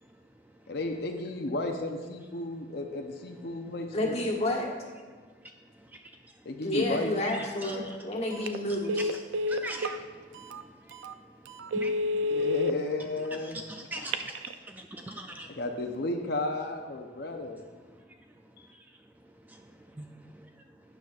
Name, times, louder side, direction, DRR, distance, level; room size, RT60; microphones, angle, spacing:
voice 1, 0.0-0.8 3.5-3.8 7.3-8.0 9.0-12.4 13.2-15.6 17.1-21.0, right 1 dB, 10° right, 4 dB, 0.3 m, -45 dB
voice 2, 0.7-4.2 6.5-7.1 12.3-13.6 15.5-17.6 18.6-18.7, left 2 dB, 55° left, 3 dB, 0.6 m, -33 dB
voice 3, 3.9-4.7 6.6-9.1, left 1 dB, 35° left, -2 dB, 1.4 m, -30 dB
Telephone, 8.3-8.6 8.9-10.0 10.5-10.6 11.0-11.1 11.6-12.7 13.9-14.5, left 1 dB, 85° right, 0.4 m, -29 dB
11.5 x 9.1 x 2.4 m, 1.5 s
head